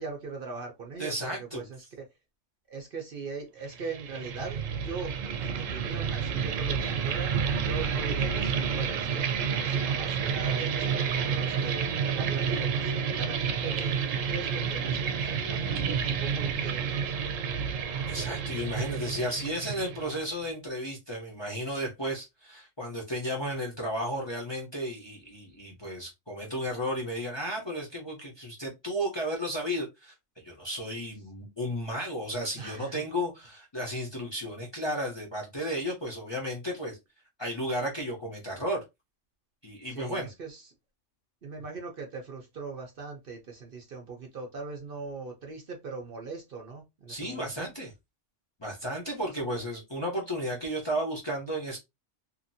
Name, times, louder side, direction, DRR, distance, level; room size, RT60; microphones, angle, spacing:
voice 1, 0.0-2.0 2.7-9.3 9.6-17.2 32.6-33.0 39.8-40.7 41.4-47.7 49.4-49.6, right 4 dB, 50° right, 0.8 m, -40 dB
voice 2, 1.0-1.6 18.0-30.1 30.4-37.0 37.4-38.8 39.6-40.3 47.1-47.9 48.6-51.8, equal, 25° left, 0.7 m, -33 dB
sound 1, 3.7-20.4, right 6 dB, 90° right, 1.0 m, -30 dB
2.8 x 2.5 x 2.6 m
omnidirectional pair, 1.3 m